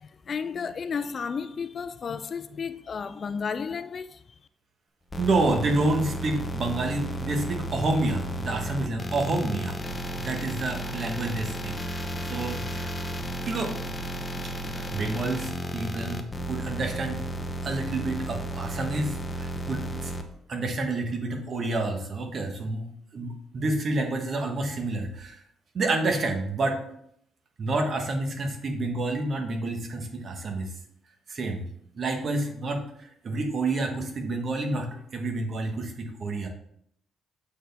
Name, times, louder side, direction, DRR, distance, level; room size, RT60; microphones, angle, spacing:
voice 1, 0.0-4.2, left 6 dB, 45° left, 0.4 m, -33 dB
sound 1, 5.1-20.2, right 1 dB, 20° left, 0.8 m, -33 dB
voice 2, 5.2-9.8 10.2-12.9 13.5-13.8 14.7-17.2 17.6-20.1 20.5-22.9 23.1-25.4 25.7-26.8 27.6-30.7 31.3-31.6 32.0-36.5, right 2 dB, 50° right, 1.3 m, -29 dB
7.5 x 4.6 x 3.4 m
cardioid pair, 90°, 0 cm